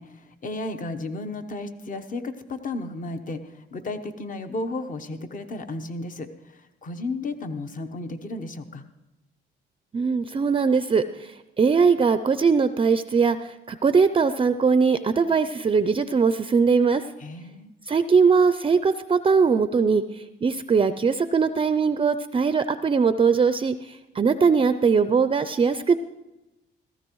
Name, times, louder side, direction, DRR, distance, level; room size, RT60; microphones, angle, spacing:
voice 1, 0.0-8.8 17.2-17.7, left 2 dB, 40° left, 9 dB, 1.0 m, -33 dB
voice 2, 9.9-17.0 17.9-26.0, right 5 dB, 25° right, 11 dB, 0.4 m, -21 dB
16.0 x 14.5 x 3.1 m, 0.98 s
cardioid pair, 90°, 20 cm